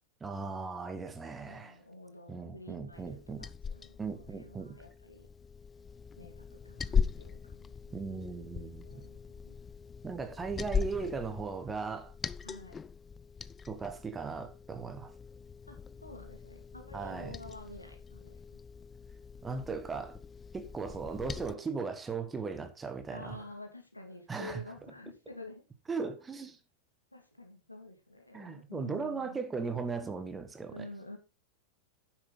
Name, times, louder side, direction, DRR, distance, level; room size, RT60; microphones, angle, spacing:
voice 1, 0.2-1.8 2.3-3.4 4.0-4.8 7.9-9.0 10.0-12.1 13.7-15.1 16.9-17.3 19.4-20.2 20.5-23.4 24.3-24.6 25.9-26.6 28.3-30.9, right 5 dB, 15° right, 1.4 m, -38 dB
voice 2, 1.4-5.3 6.2-8.3 8.8-9.6 12.4-12.8 15.7-18.4 23.1-25.6 27.1-29.4 30.7-31.2, left 2 dB, 85° left, 2.5 m, -49 dB
Liquid, 2.9-21.5, left 6 dB, 20° left, 0.4 m, -40 dB
9.8 x 7.4 x 3.9 m
figure-of-eight pair, 90°, 0 cm